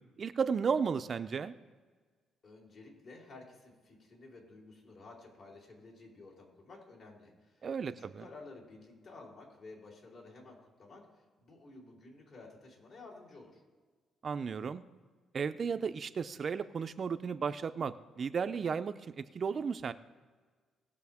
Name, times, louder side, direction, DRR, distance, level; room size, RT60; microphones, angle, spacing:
voice 1, 0.2-1.5 7.6-8.2 14.2-14.8 15.3-19.9, right 6 dB, 45° right, 12 dB, 0.5 m, -34 dB
voice 2, 2.4-13.6, left 3 dB, 55° left, -2 dB, 4.0 m, -53 dB
20.0 x 6.6 x 3.6 m, 1.4 s
cardioid pair, 90°, 0 cm